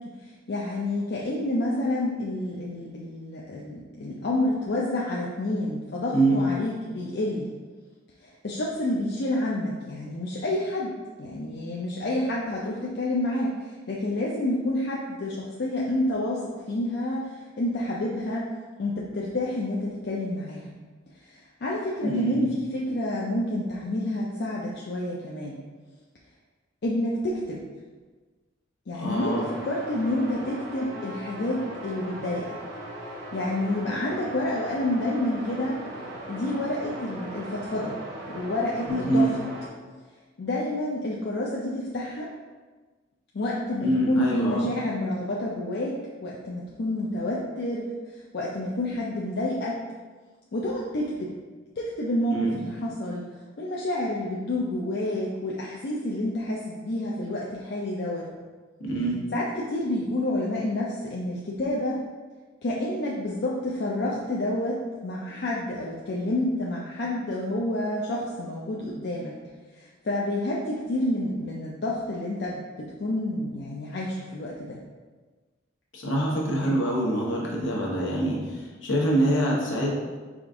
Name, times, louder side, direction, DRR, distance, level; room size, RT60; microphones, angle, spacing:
voice 1, 0.2-7.5 8.2-18.5 18.8-20.7 21.2-25.6 26.8-27.6 28.9-32.5 33.3-35.8 36.3-38.0 38.3-39.3 40.4-42.3 43.3-46.0 46.2-47.8 48.1-49.8 50.5-51.3 51.8-53.2 53.6-58.3 59.3-62.0 62.6-69.4 69.7-74.8 76.6-76.7, left 1 dB, 55° left, -4 dB, 0.5 m, -29 dB
voice 2, 22.0-22.5 29.0-29.5 38.9-39.3 43.8-44.7 52.3-52.6 58.8-59.2 75.9-79.9, right 1 dB, 75° left, -3 dB, 1.0 m, -25 dB
sound 1, 29.1-39.7, right 1 dB, 55° right, 0.9 m, -39 dB
4.9 x 2.5 x 3.5 m, 1.4 s
head